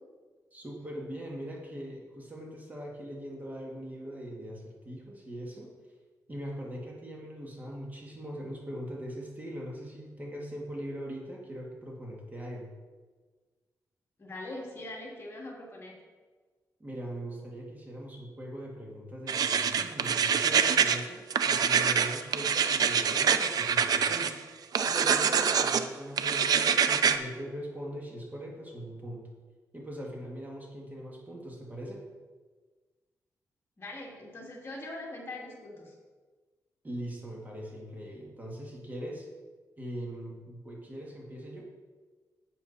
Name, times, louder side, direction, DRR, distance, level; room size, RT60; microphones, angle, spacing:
voice 1, 0.5-5.7 6.3-12.7 16.8-24.4 24.8-29.2 29.7-32.0 36.8-39.3 39.8-41.6, equal, 25° right, -2 dB, 2.2 m, -41 dB
voice 2, 14.2-16.0 33.8-35.9, left 2 dB, 35° left, -3 dB, 2.7 m, -42 dB
sound 1, 19.3-21.0 21.3-24.3 24.7-25.8 26.2-27.2, right 7 dB, 70° right, 0.6 m, -25 dB
11.0 x 8.8 x 4.3 m, 1.4 s
cardioid pair, 105°, 7 cm